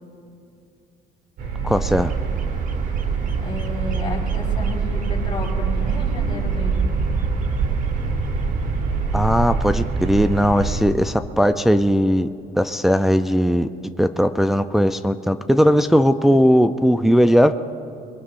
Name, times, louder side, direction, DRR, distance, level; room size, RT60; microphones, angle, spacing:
sound 1, 1.4-10.8, right 5 dB, 65° right, 2.8 m, -25 dB
voice 1, 1.6-2.1 9.1-12.3 12.6-13.7 14.0-17.5, equal, ahead, 8 dB, 0.4 m, -18 dB
Bird vocalization bird call bird song, 1.8-10.8, right 5 dB, 50° right, 1.1 m, -30 dB
voice 2, 3.4-7.0, left 2 dB, 30° left, -3 dB, 5.1 m, -32 dB
23.0 x 22.0 x 2.6 m, 2.4 s
cardioid pair, 110°, 17 cm